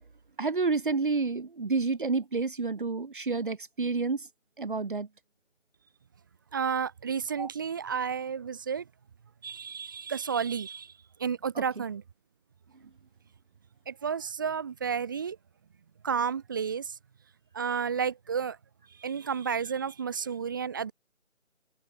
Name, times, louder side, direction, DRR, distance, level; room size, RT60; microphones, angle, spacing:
voice 1, 0.4-4.3 4.6-5.1 7.4-7.5 11.5-11.8, right 4 dB, 40° right, 3.2 m, -29 dB
voice 2, 6.5-8.8 9.4-10.9 11.2-12.0 13.9-15.4 16.0-17.0 17.5-18.6 19.0-20.9, right 6 dB, 15° right, 2.0 m, -31 dB
figure-of-eight pair, 160°, 38 cm